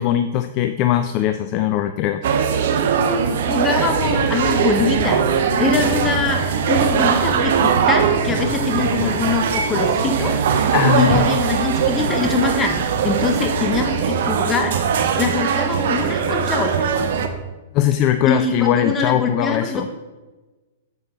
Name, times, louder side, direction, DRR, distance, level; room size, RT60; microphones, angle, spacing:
voice 1, 0.0-2.3 10.7-11.2 17.7-19.9, left 11 dB, 40° left, 10 dB, 0.4 m, -20 dB
sound 1, 2.2-17.3, right 7 dB, 55° right, 0.8 m, -20 dB
voice 2, 3.5-5.2 5.6-10.7 10.9-16.8 18.3-19.8, left 3 dB, 20° left, 4 dB, 1.3 m, -23 dB
sound 2, 3.9-13.8, left 4 dB, 70° left, 0.7 m, -32 dB
9.0 x 7.1 x 4.0 m, 1.2 s
figure-of-eight pair, 105°, 0 cm